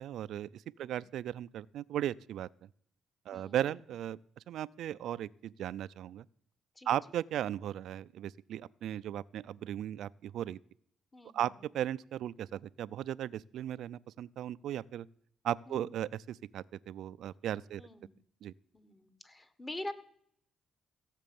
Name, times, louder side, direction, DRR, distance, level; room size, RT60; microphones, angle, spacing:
voice 1, 0.0-2.5 3.3-4.2 4.5-6.3 6.9-10.6 11.3-15.1 15.4-17.8 18.4-18.5, right 11 dB, 75° right, 19 dB, 0.4 m, -36 dB
voice 2, 0.8-1.1 3.3-3.6 6.7-6.9 11.1-11.5 15.7-15.9 17.8-18.1 18.7-19.9, left 1 dB, 20° left, 11 dB, 1.6 m, -45 dB
16.0 x 7.5 x 7.0 m, 0.66 s
cardioid pair, 90°, 0 cm